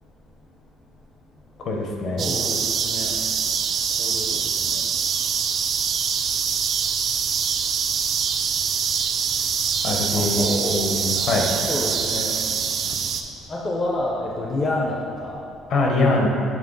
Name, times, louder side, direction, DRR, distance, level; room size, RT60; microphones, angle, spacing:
voice 1, 1.6-2.3 9.8-10.5 10.7-11.5 15.7-16.3, left 2 dB, 50° left, 0 dB, 0.8 m, -22 dB
voice 2, 2.2-3.2 4.0-4.8 10.1-10.8 11.7-12.3 13.5-15.4, left 1 dB, 20° left, -3 dB, 0.5 m, -28 dB
sound 1, 2.2-13.2, right 7 dB, 45° right, 0.3 m, -24 dB
7.4 x 3.3 x 3.8 m, 2.5 s
cardioid pair, 155°, 0 cm